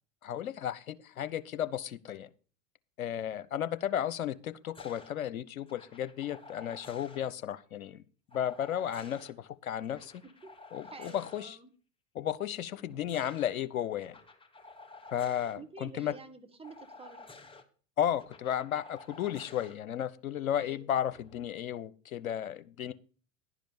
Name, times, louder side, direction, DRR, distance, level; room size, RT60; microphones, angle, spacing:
voice 1, 0.2-2.3 3.0-8.0 8.3-10.2 10.7-11.6 12.1-14.2 15.1-16.1 18.0-22.9, left 10 dB, 85° left, 14 dB, 0.8 m, -34 dB
sound 1, 4.7-5.1 5.7-7.2 8.3-9.3 9.8-11.4 12.7-13.5 14.0-15.6 16.6-17.6 18.2-19.8 21.0-21.4, left 3 dB, 15° left, 1.2 m, -52 dB
voice 2, 10.8-11.7 15.5-17.3 20.6-20.9, right 4 dB, 15° right, 7 dB, 1.4 m, -50 dB
11.0 x 5.1 x 7.0 m, 0.40 s
hypercardioid pair, 85°, 41 cm